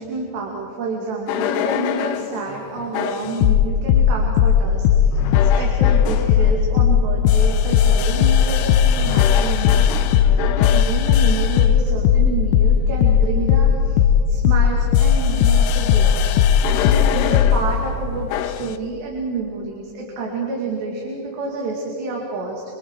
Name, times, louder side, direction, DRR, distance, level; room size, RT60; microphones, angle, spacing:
voice 1, 0.0-9.9 10.3-16.5 16.9-22.6, right 3 dB, 80° right, -2 dB, 4.7 m, -29 dB
sound 1, 1.3-2.3 2.9-17.6 18.3-18.7, left 8 dB, 80° left, 2.8 m, -16 dB
28.0 x 26.5 x 4.8 m, 2.6 s
omnidirectional pair, 4.9 m